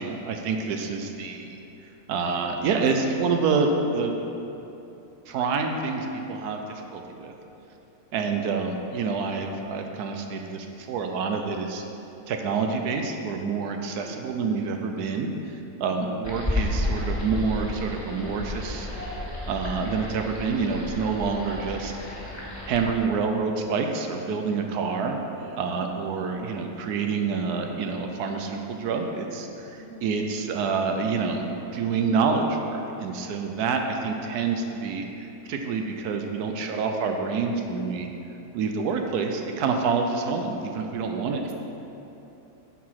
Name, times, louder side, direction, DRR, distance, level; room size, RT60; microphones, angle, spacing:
voice 1, 0.0-1.6 2.1-4.1 5.3-7.3 8.1-11.8 12.3-15.3 15.8-18.9 19.5-21.9 22.7-25.2 25.6-38.1 38.5-41.4, right 5 dB, 85° right, 4 dB, 1.2 m, -27 dB
voice 2, 13.9-14.3 25.1-25.6 29.8-30.2 39.2-39.4 41.1-41.6, right 3 dB, 50° right, 2 dB, 1.0 m, -47 dB
sound 1, 16.2-22.8, left 1 dB, 10° left, 1.7 m, -32 dB
9.2 x 4.8 x 5.7 m, 2.9 s
omnidirectional pair, 1.6 m